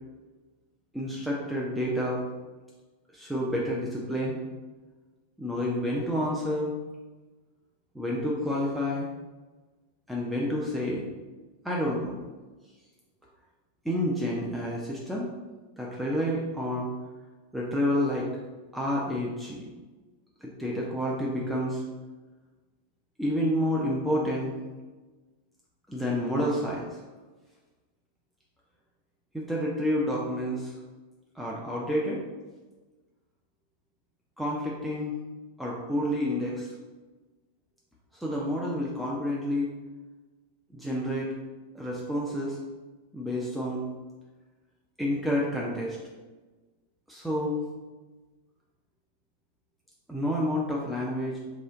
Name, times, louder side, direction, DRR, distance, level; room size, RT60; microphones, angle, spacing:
voice 1, 0.9-2.2 3.1-4.4 5.4-6.7 7.9-9.1 10.1-11.0 11.6-12.1 13.8-15.3 15.8-16.9 17.5-18.3 18.7-19.7 20.4-21.8 23.2-24.6 25.9-26.9 29.3-30.7 31.4-32.2 34.4-35.1 35.6-36.7 38.2-39.7 40.7-41.3 41.7-42.6 43.1-43.9 45.0-46.0 47.1-47.6 50.1-51.4, equal, 5° right, -5 dB, 0.5 m, -29 dB
3.0 x 2.4 x 3.7 m, 1.3 s
figure-of-eight pair, 90°, 0 cm